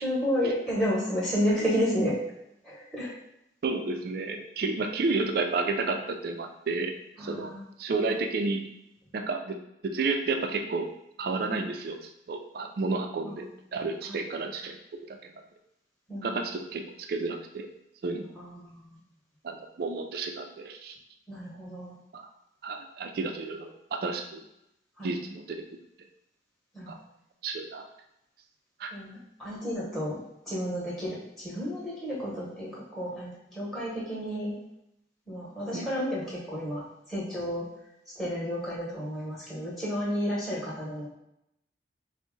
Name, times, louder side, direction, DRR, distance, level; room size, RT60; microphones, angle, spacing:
voice 1, 0.0-2.1 2.6-3.1 7.2-7.6 8.1-8.2 11.5-11.6 13.2-13.4 14.1-14.2 16.1-16.4 18.3-19.0 21.3-21.9 25.0-25.1 26.7-27.0 28.9-30.2 30.5-34.5 35.3-36.8 37.1-37.6 38.2-41.1, equal, ahead, -8 dB, 0.9 m, -31 dB
voice 2, 3.6-6.9 7.2-7.5 7.8-8.7 9.1-9.6 9.8-10.9 11.2-14.8 15.1-15.2 16.2-17.7 18.0-18.3 19.4-21.0 22.1-22.3 22.6-24.4 25.0-25.6 26.9-27.0 27.4-27.8 28.8-28.9 35.7-35.9, right 3 dB, 55° right, 5 dB, 0.3 m, -31 dB
3.8 x 2.0 x 3.7 m, 0.81 s
head